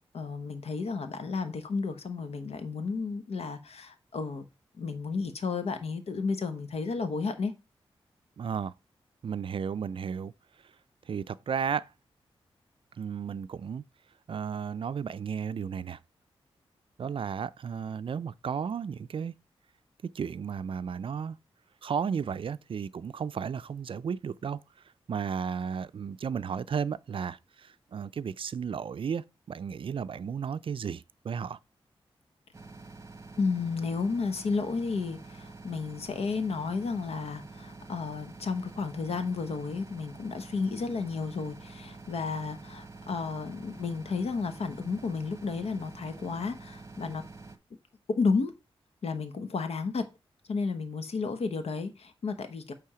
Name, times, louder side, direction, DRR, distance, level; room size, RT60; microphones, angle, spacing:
voice 1, 0.1-4.5 4.8-7.5 33.4-47.2 48.1-48.5 49.0-50.0 50.5-52.7, left 4 dB, 80° left, 1.1 m, -32 dB
voice 2, 8.4-8.7 9.2-10.3 11.1-11.8 13.0-13.8 14.3-16.0 17.0-19.3 20.1-21.4 21.8-24.6 25.1-31.6, right 7 dB, 60° right, 0.4 m, -34 dB
sound 1, 32.5-47.6, right 3 dB, 30° right, 1.0 m, -47 dB
8.7 x 3.5 x 4.9 m
cardioid pair, 80°, 10 cm